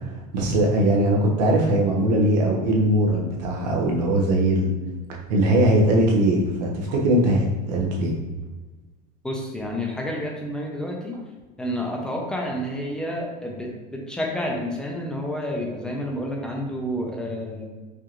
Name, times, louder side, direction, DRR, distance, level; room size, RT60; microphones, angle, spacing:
voice 1, 0.3-4.7 5.3-8.1, right 1 dB, 85° right, -2 dB, 1.1 m, -20 dB
voice 2, 9.2-11.2 11.6-17.7, equal, 5° left, -1 dB, 0.5 m, -29 dB
4.8 x 2.5 x 2.9 m, 1.3 s
supercardioid pair, 145°, 21 cm